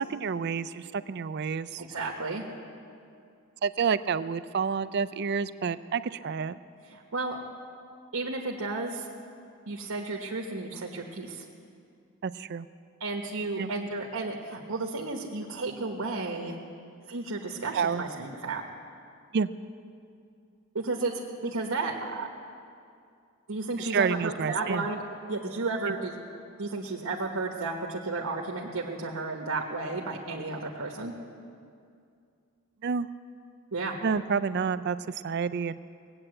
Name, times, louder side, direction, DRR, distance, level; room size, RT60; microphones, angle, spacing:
voice 1, 0.0-1.8 3.6-6.6 12.2-12.7 13.6-13.7 17.7-18.0 19.3-19.5 23.8-24.8 25.9-26.0 32.8-33.1 34.0-35.8, right 6 dB, 50° right, 14 dB, 0.4 m, -29 dB
voice 2, 1.8-2.4 6.9-7.4 8.1-9.1 9.7-11.4 13.0-16.6 17.1-18.6 20.7-21.1 21.4-22.3 23.5-25.0 25.3-26.2 26.6-31.1 33.7-34.0, right 3 dB, 80° right, 0 dB, 1.2 m, -33 dB
18.5 x 8.8 x 7.8 m, 2.4 s
head